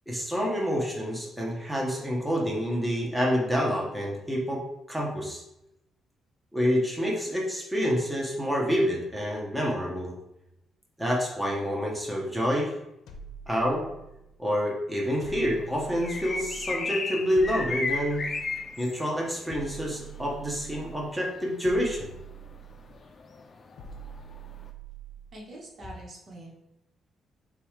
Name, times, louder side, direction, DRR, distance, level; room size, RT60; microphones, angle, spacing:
voice 1, 0.1-4.6 4.9-5.4 6.5-10.2 11.0-12.7 13.5-13.9 14.4-18.2 18.8-22.1, equal, ahead, -3 dB, 1.0 m, -28 dB
sound 1, 13.1-14.4 15.2-16.8 17.3-18.8 19.5-21.1 21.6-23.0 23.8-25.4, right 6 dB, 80° left, 0.6 m, -45 dB
sound 2, 15.0-24.7, left 3 dB, 40° left, 0.5 m, -35 dB
voice 2, 25.3-26.5, right 1 dB, 50° right, -2 dB, 1.2 m, -44 dB
6.6 x 2.4 x 3.2 m, 0.88 s
cardioid pair, 90°, 0 cm